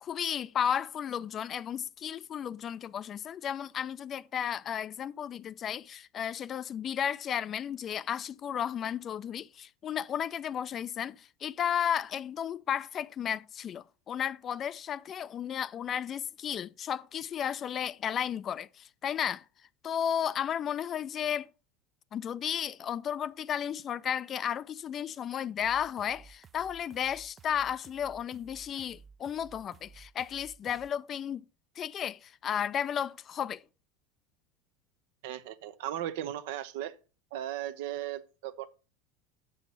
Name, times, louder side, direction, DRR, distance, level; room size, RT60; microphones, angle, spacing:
voice 1, 0.0-19.4 19.8-21.5 22.1-31.4 31.8-33.6, left 9 dB, 35° left, 0.4 m, -33 dB
sound 1, 25.6-30.9, right 5 dB, 30° right, 0.5 m, -55 dB
voice 2, 35.2-37.0 37.3-38.7, right 12 dB, 65° right, 0.7 m, -37 dB
7.8 x 6.1 x 5.5 m
figure-of-eight pair, 80°, 0 cm